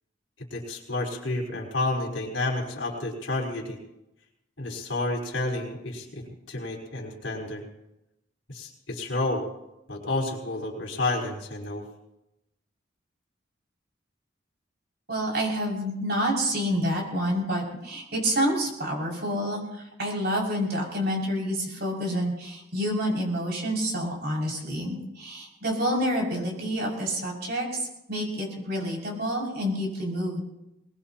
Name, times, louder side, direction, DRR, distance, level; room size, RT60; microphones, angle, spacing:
voice 1, 0.5-3.8 4.6-7.6 8.5-9.4 9.9-11.8, left 2 dB, 80° left, -1 dB, 4.6 m, -30 dB
voice 2, 15.1-30.4, equal, 60° right, -1 dB, 6.4 m, -28 dB
23.5 x 20.0 x 3.0 m, 0.90 s
head